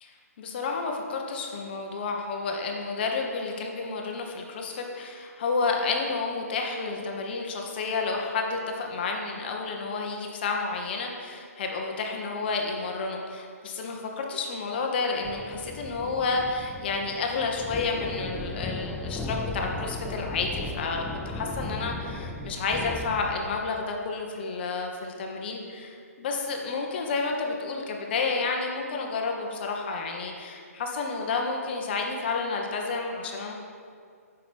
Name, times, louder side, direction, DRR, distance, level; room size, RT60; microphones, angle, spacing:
voice 1, 0.0-33.5, left 4 dB, 40° left, 1 dB, 1.2 m, -30 dB
sound 1, 15.2-23.6, left 2 dB, 5° left, 0.3 m, -36 dB
6.9 x 6.0 x 7.0 m, 2.2 s
hypercardioid pair, 155°, 8 cm